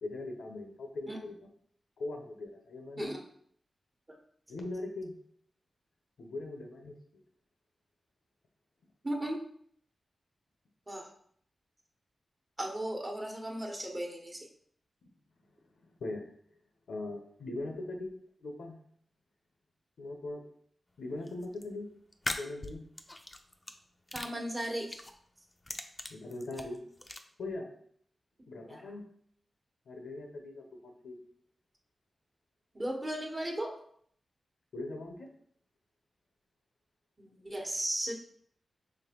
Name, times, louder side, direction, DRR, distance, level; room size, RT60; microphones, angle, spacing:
voice 1, 0.0-1.4 2.0-3.1 4.5-5.1 6.2-7.0 15.0-15.1 16.0-16.3 16.9-18.1 18.4-18.7 20.0-20.4 21.0-21.9 22.4-22.8 26.1-26.8 27.4-27.7 28.5-29.1 29.9-31.2 34.7-35.3, left 2 dB, 90° left, 3 dB, 0.7 m, -40 dB
voice 2, 9.0-9.4 10.9-11.1 12.6-14.4 24.1-25.0 28.7-28.8 32.7-33.7 37.2-38.1, right 1 dB, 30° right, 0 dB, 1.2 m, -36 dB
sound 1, 21.2-21.6 22.1-23.7 24.1-25.1 25.5-27.2, left 2 dB, 25° left, 0.5 m, -40 dB
5.2 x 3.4 x 2.9 m, 0.63 s
cardioid pair, 60°, 0 cm